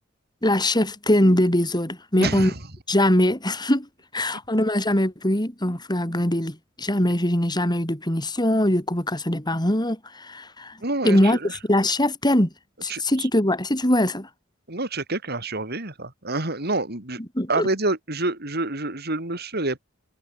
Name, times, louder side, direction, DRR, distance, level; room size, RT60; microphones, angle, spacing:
voice 1, 0.4-2.5 2.9-3.9 4.1-10.8 11.0-11.4 11.7-12.5 12.8-14.3 17.3-17.7, left 1 dB, 20° left, 5.1 m, -22 dB
voice 2, 2.2-2.6 10.8-11.6 12.9-13.3 14.7-17.2 17.5-19.8, right 2 dB, 55° right, 5.6 m, -28 dB
head